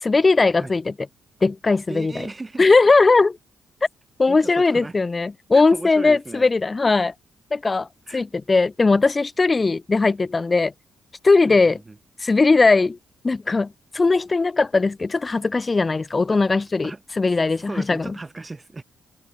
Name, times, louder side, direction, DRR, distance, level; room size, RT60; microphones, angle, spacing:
voice 1, 0.0-0.9 1.4-2.3 2.6-3.4 4.2-7.1 7.5-7.9 8.1-10.7 11.2-11.8 12.2-13.0 13.2-16.9 17.2-18.1, left 3 dB, 25° left, 2.4 m, -19 dB
voice 2, 1.9-2.7 4.3-4.9 5.5-6.5 8.1-8.2 11.5-12.0 16.8-17.0 17.7-18.8, right 3 dB, 20° right, 7.8 m, -36 dB
cardioid pair, 100°, 0 cm